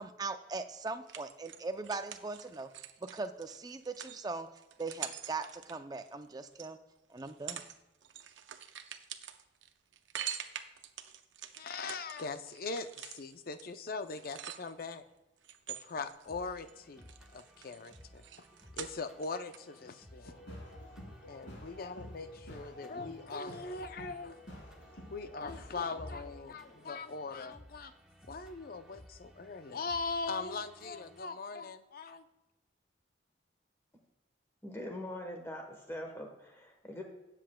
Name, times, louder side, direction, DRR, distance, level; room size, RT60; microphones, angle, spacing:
voice 1, 0.0-4.5 4.8-6.8 7.1-7.6, right 3 dB, 20° right, 8 dB, 0.4 m, -40 dB
sound 1, 0.9-6.7 7.2-7.8 8.0-15.0 15.4-16.7 17.0-19.3 19.5-19.6, right 9 dB, 80° right, 0.6 m, -45 dB
voice 2, 11.6-15.0 15.7-18.2 18.7-20.4 21.2-24.4 24.9-27.9 28.3-32.2, left 4 dB, 50° left, 10 dB, 0.5 m, -40 dB
sound 2, 16.3-31.2, equal, 5° right, 1.1 m, -58 dB
sound 3, 20.2-26.4, left 1 dB, 70° left, 3.1 m, -49 dB
voice 3, 34.6-37.0, left 1 dB, 15° left, 3 dB, 1.0 m, -42 dB
17.5 x 7.5 x 2.2 m, 1.0 s
head